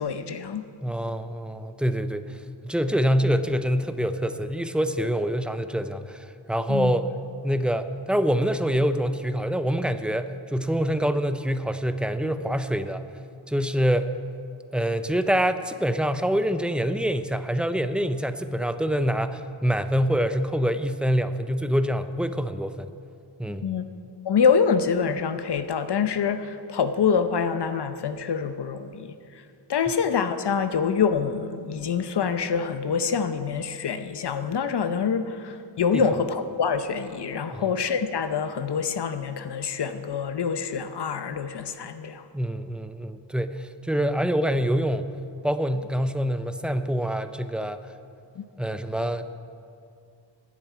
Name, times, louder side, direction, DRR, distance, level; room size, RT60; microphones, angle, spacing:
voice 1, 0.0-0.6 6.7-6.9 23.6-23.8 24.2-29.1 29.7-42.2 48.4-48.5, left 6 dB, 60° left, 10 dB, 0.8 m, -26 dB
voice 2, 0.8-2.3 2.6-7.0 7.4-13.0 13.5-14.1 14.7-22.9 23.4-23.7 35.9-36.0 37.5-37.7 42.3-45.1 45.4-47.8 48.6-49.3, equal, ahead, 10 dB, 0.5 m, -25 dB
10.5 x 7.6 x 9.3 m, 2.4 s
wide cardioid pair, 85°, 45 cm